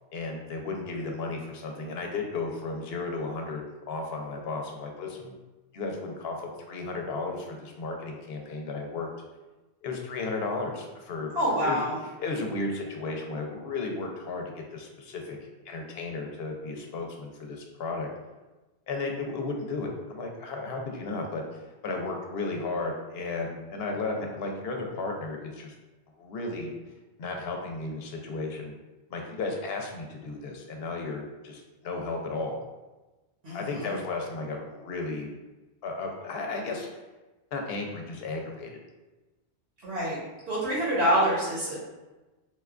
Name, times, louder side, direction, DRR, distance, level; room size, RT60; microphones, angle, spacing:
voice 1, 0.1-5.3 5.7-9.1 9.8-11.3 11.6-11.9 12.2-14.4 14.7-15.4 15.7-18.1 18.9-21.4 21.8-25.7 26.2-26.7 27.2-28.7 29.1-32.6 33.5-35.3 35.8-36.9 37.5-38.7, left 3 dB, 70° left, 2 dB, 0.8 m, -34 dB
voice 2, 11.3-12.0 33.4-34.0 39.8-40.2 40.5-41.8, equal, 75° right, -6 dB, 1.1 m, -26 dB
4.4 x 2.2 x 2.4 m, 1.1 s
omnidirectional pair, 1.1 m